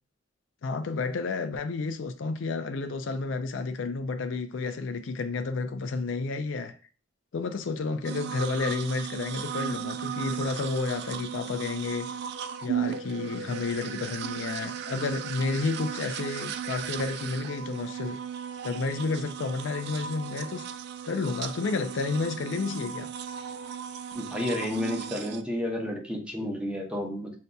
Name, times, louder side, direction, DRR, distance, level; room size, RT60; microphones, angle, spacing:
voice 1, 0.6-6.8 7.3-12.1 12.6-18.2 18.6-20.7 21.1-23.1, left 3 dB, 75° left, 0.4 m, -31 dB
sound 1, 8.0-25.4, right 8 dB, 60° right, 0.3 m, -36 dB
voice 2, 24.1-27.3, left 1 dB, 5° right, 0.8 m, -31 dB
6.5 x 2.6 x 2.2 m
head